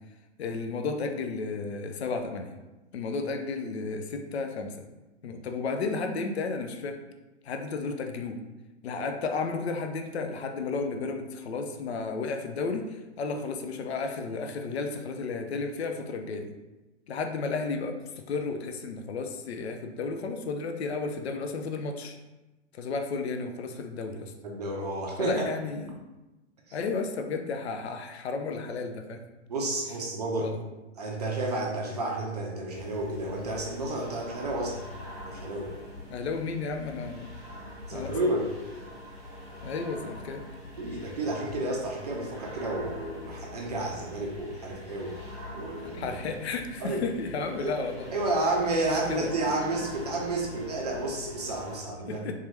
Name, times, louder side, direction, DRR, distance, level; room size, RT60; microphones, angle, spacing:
voice 1, 0.4-2.5 2.9-4.9 5.2-7.0 7.4-8.4 8.8-16.5 17.1-18.0 18.3-22.2 22.8-24.3 25.2-26.0 26.7-29.2 30.4-30.6 36.1-37.3 37.9-38.1 39.6-40.4 45.9-48.1 49.1-49.3 52.1-52.3, left 4 dB, 60° left, 5 dB, 0.5 m, -33 dB
voice 2, 24.4-25.4 29.5-30.5 31.0-34.8 35.3-35.7 37.9-38.5 40.8-45.2 45.5-46.1 46.8-47.0 47.6-47.8 48.1-52.2, right 2 dB, 35° right, -1 dB, 0.5 m, -31 dB
sound 1, 32.7-51.8, left 1 dB, ahead, 1.0 m, -44 dB
3.6 x 2.7 x 3.2 m, 1.1 s
figure-of-eight pair, 120°, 37 cm